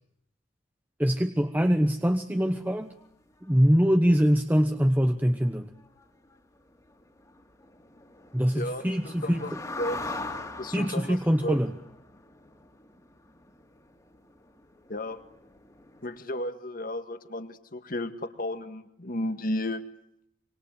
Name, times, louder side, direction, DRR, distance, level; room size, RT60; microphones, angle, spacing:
voice 1, 1.0-2.9 3.4-5.7 8.3-9.4 10.7-11.7, equal, 10° right, 7 dB, 1.0 m, -23 dB
sound 1, 2.5-2.6 3.0-3.1 3.3-3.5 3.9-4.2 4.6-4.7 5.0-5.1 5.3-5.5 5.8-16.2, left 2 dB, 20° left, 2.7 m, -43 dB
voice 2, 8.5-9.5 9.8-10.0 10.6-11.6 14.9-15.2 16.0-19.8, left 1 dB, 50° left, 9 dB, 1.9 m, -33 dB
25.5 x 24.5 x 9.3 m, 0.74 s
head